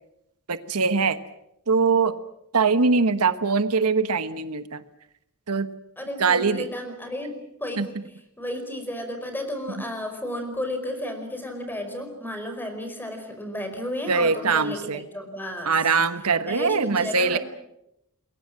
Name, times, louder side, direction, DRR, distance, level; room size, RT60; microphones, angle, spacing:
voice 1, 0.5-1.2 1.7-2.1 2.5-4.8 5.5-5.7 6.2-6.7 7.8-7.9 14.1-15.0 15.6-17.4, right 4 dB, 85° right, 11 dB, 1.3 m, -22 dB
voice 2, 6.0-8.0 8.4-15.7 16.5-17.4, left 1 dB, 10° left, 6 dB, 5.1 m, -33 dB
28.0 x 22.0 x 7.6 m, 0.81 s
head